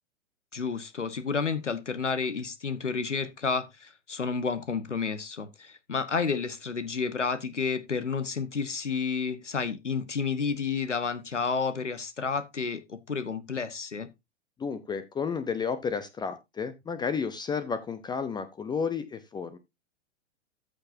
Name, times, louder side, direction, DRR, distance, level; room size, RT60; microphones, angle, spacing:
voice 1, 0.5-14.1, left 5 dB, 80° left, 1.3 m, -31 dB
voice 2, 14.6-19.6, left 6 dB, 10° left, 0.7 m, -32 dB
14.0 x 6.7 x 2.7 m
figure-of-eight pair, 100°, 35 cm